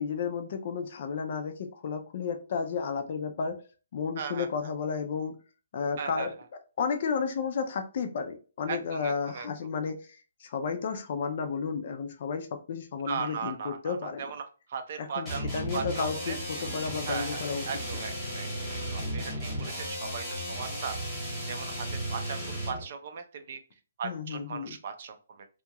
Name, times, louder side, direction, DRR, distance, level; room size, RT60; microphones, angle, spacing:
voice 1, 0.0-3.6 3.9-5.4 5.7-6.3 6.8-14.3 15.0-17.6 17.9-18.0 24.0-24.8, left 5 dB, 40° left, 0.4 m, -32 dB
voice 2, 4.2-4.5 6.0-6.3 8.7-9.5 13.1-16.4 17.1-21.0 21.5-23.6 24.0-25.5, right 6 dB, 40° right, 0.4 m, -38 dB
sound 1, 15.2-22.9, equal, 5° left, 0.9 m, -35 dB
2.7 x 2.3 x 2.8 m
hypercardioid pair, 170°, 0 cm